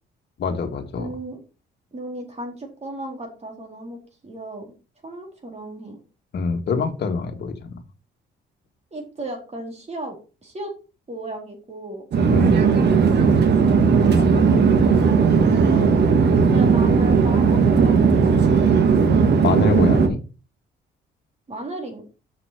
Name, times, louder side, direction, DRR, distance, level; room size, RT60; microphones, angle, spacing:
voice 1, 0.4-1.1 6.3-7.7 12.3-12.7 14.2-14.8 19.4-20.2, left 4 dB, 60° left, 1.7 m, -25 dB
voice 2, 1.0-1.4 1.9-4.7 5.0-6.0 8.9-10.2 10.4-10.7 11.1-12.1 14.8-15.1 15.4-18.6 21.5-22.0, right 1 dB, 35° right, 3.9 m, -35 dB
Conversation / Chatter / Fixed-wing aircraft airplane, 12.1-20.1, right 5 dB, 60° right, 1.6 m, -16 dB
7.3 x 6.1 x 4.8 m
cardioid pair, 90°, 20 cm